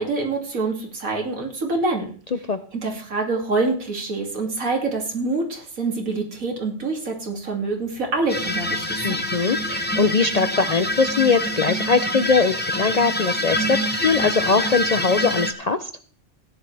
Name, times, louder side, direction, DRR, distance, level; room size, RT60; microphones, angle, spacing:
voice 1, 0.0-2.1 2.7-9.3, right 3 dB, 85° right, 1 dB, 3.0 m, -26 dB
Bowed string instrument, 7.0-11.8, equal, 40° right, 2.5 m, -48 dB
sound 1, 8.3-15.5, left 1 dB, 10° left, 0.9 m, -25 dB
voice 2, 9.0-15.9, left 4 dB, 55° left, 10 dB, 0.4 m, -21 dB
16.5 x 11.0 x 3.3 m, 0.43 s
omnidirectional pair, 1.4 m